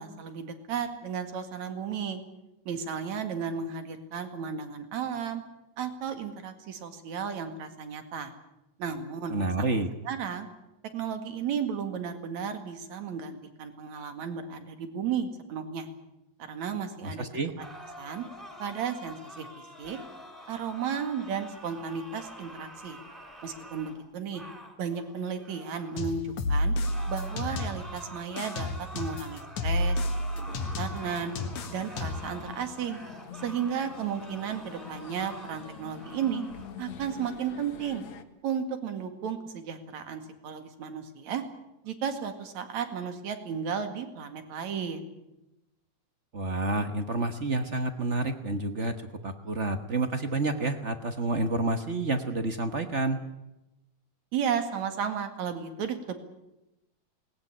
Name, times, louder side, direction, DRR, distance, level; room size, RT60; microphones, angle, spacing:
voice 1, 0.0-2.2 2.7-5.4 5.8-8.3 8.8-9.7 10.1-10.5 10.9-15.9 16.5-17.3 18.0-18.3 18.6-19.5 19.8-20.0 20.5-23.0 23.4-24.4 24.8-26.8 27.1-28.7 28.9-30.0 30.4-31.4 31.7-33.0 33.3-36.4 36.8-38.0 38.4-41.4 41.8-45.1 54.3-56.2, right 7 dB, 75° right, 8 dB, 3.4 m, -34 dB
voice 2, 9.3-9.9 17.0-17.5 46.3-48.9 49.2-53.2, right 2 dB, 50° right, 8 dB, 0.8 m, -29 dB
sound 1, 17.6-26.1 26.8-36.7, equal, ahead, 2.7 m, -47 dB
sound 2, 26.0-28.0 28.4-32.4, left 1 dB, 90° left, 3.2 m, -30 dB
sound 3, 30.5-38.2, left 8 dB, 70° left, 2.6 m, -46 dB
19.5 x 19.0 x 9.9 m, 0.93 s
omnidirectional pair, 3.3 m